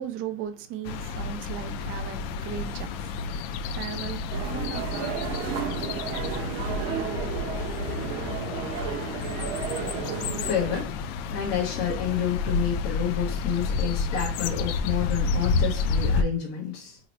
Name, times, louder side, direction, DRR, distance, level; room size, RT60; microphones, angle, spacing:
voice 1, 0.0-5.8, right 10 dB, 40° right, 0.5 m, -38 dB
sound 1, 0.9-16.2, left 4 dB, 70° left, 0.5 m, -30 dB
sound 2, 4.3-10.8, right 8 dB, 70° right, 0.9 m, -33 dB
voice 2, 10.3-10.9 11.3-17.0, left 9 dB, 45° left, 0.9 m, -29 dB
2.9 x 2.1 x 3.9 m
supercardioid pair, 145°, 31 cm